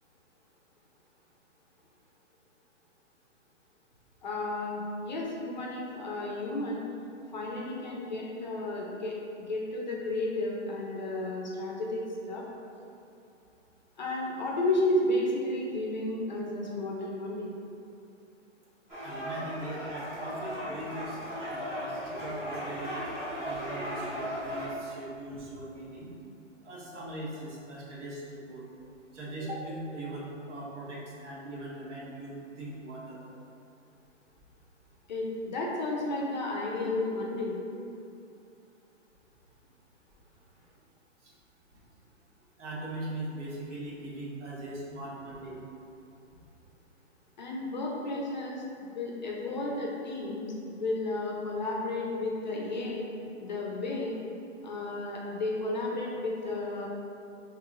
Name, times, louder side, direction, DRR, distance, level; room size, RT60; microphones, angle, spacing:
voice 1, 4.2-6.8 7.3-12.0 12.3-12.5 14.0-17.5 35.1-37.6 47.4-48.6 48.9-53.1 53.4-54.2 54.6-56.9, left 2 dB, 40° left, -2 dB, 0.4 m, -32 dB
sound 1, 18.9-24.7, equal, 15° right, 0.5 m, -37 dB
voice 2, 19.0-21.2 21.5-22.9 23.4-26.1 26.6-28.6 29.1-33.2 41.2-41.3 41.7-41.8 42.6-45.6, right 1 dB, 65° right, -5 dB, 1.2 m, -40 dB
4.7 x 2.9 x 2.4 m, 2.6 s
hypercardioid pair, 155°, 38 cm